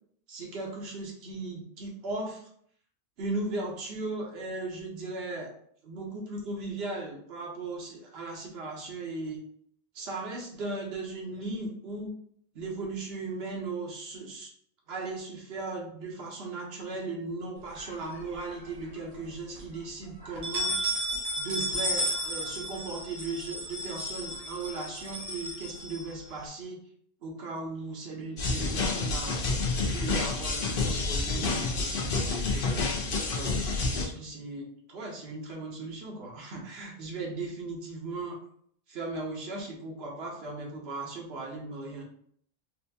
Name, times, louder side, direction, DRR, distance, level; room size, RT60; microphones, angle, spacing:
voice 1, 0.3-2.5 3.2-5.5 5.8-9.4 9.9-12.1 12.5-14.5 14.9-20.8 21.3-26.8 27.2-29.4 29.8-32.7 33.3-38.4 38.9-42.0, right 3 dB, 80° right, -1 dB, 1.0 m, -37 dB
sound 1, 17.8-18.7 19.1-19.2 19.6-19.7 20.2-26.4, equal, 40° right, 0.8 m, -33 dB
sound 2, 28.4-34.1, left 3 dB, 65° left, 0.8 m, -29 dB
4.1 x 2.3 x 2.7 m, 0.64 s
omnidirectional pair, 1.0 m